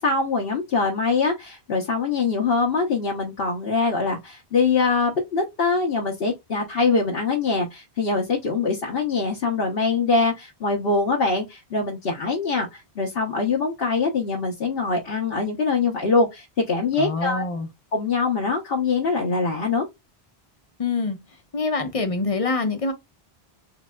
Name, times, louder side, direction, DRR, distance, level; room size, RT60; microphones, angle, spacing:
voice 1, 0.0-17.4 17.9-19.9, left 4 dB, 65° left, 1.1 m, -23 dB
voice 2, 17.0-17.7 20.8-21.2 21.5-22.9, left 3 dB, 35° left, 0.8 m, -25 dB
4.0 x 3.2 x 2.2 m
omnidirectional pair, 1.1 m